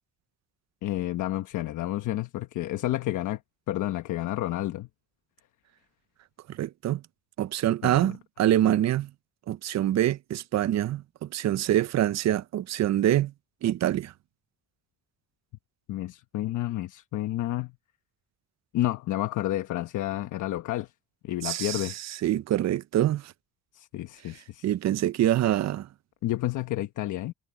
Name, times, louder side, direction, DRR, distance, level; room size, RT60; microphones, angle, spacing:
voice 1, 0.8-3.4 3.7-4.9 7.8-8.1 15.9-17.7 18.7-20.9 21.2-22.0 23.7-24.6 26.2-27.3, left 15 dB, 80° left, 1.1 m, -30 dB
voice 2, 6.5-7.0 7.4-9.1 9.5-13.3 13.6-14.1 21.4-21.9 22.2-23.3 24.6-25.9, right 12 dB, 60° right, 0.7 m, -25 dB
cardioid pair, 90°, 30 cm